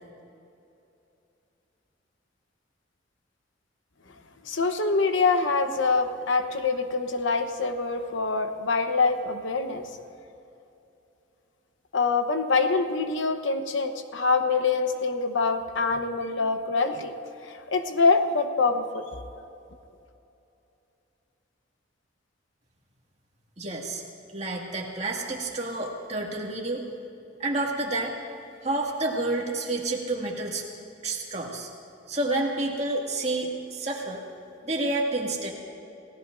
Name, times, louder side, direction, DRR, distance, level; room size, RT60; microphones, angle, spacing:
voice 1, 4.4-9.9 11.9-19.0, left 4 dB, 80° left, 7 dB, 1.0 m, -25 dB
voice 2, 23.6-24.0 24.3-26.8 27.4-28.1 28.6-30.6 31.0-31.7 32.1-34.2 34.6-35.5, right 2 dB, 35° right, -2 dB, 2.1 m, -29 dB
29.0 x 17.0 x 2.6 m, 2.7 s
head